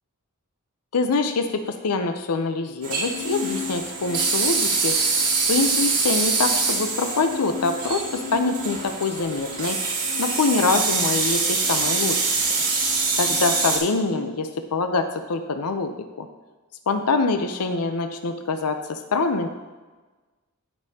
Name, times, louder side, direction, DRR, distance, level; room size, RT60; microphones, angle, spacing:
voice 1, 0.9-4.9 5.5-9.8 10.2-12.2 13.2-16.3 16.9-19.5, left 3 dB, 85° left, 7 dB, 0.6 m, -25 dB
sound 1, 2.8-13.8, right 3 dB, 80° right, 2.4 m, -24 dB
15.5 x 5.4 x 2.8 m, 1.3 s
head